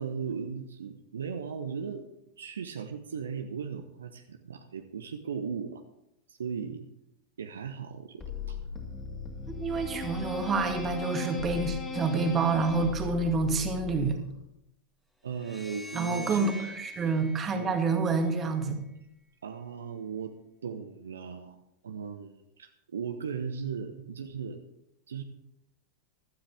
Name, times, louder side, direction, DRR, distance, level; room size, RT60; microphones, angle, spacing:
voice 1, 0.0-2.1 2.4-5.8 6.3-6.9 7.4-8.6 15.2-16.5 17.5-17.8 19.4-20.3 20.6-24.6 25.1-25.2, right 6 dB, 70° right, 7 dB, 0.9 m, -37 dB
sound 1, 8.2-14.4, left 5 dB, 20° left, 2.7 m, -37 dB
voice 2, 9.5-14.2 15.9-16.5 16.8-18.8, right 4 dB, 25° right, 6 dB, 1.9 m, -28 dB
sound 2, 15.3-18.6, equal, ahead, 1.7 m, -45 dB
16.0 x 12.5 x 3.5 m, 0.82 s
figure-of-eight pair, 90°, 0 cm